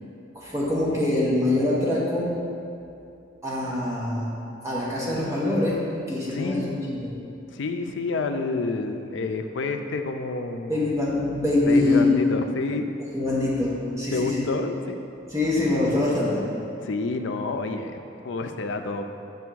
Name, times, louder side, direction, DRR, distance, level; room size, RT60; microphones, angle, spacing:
voice 1, 0.3-2.3 3.4-4.3 4.6-5.8 6.1-7.1 10.7-12.1 13.1-14.4 15.3-16.5, left 2 dB, 15° right, -6 dB, 1.0 m, -24 dB
voice 2, 6.3-6.8 7.5-10.8 11.7-12.9 14.1-15.0 16.8-19.1, left 3 dB, 70° left, 6 dB, 0.4 m, -29 dB
6.6 x 3.5 x 6.1 m, 2.6 s
head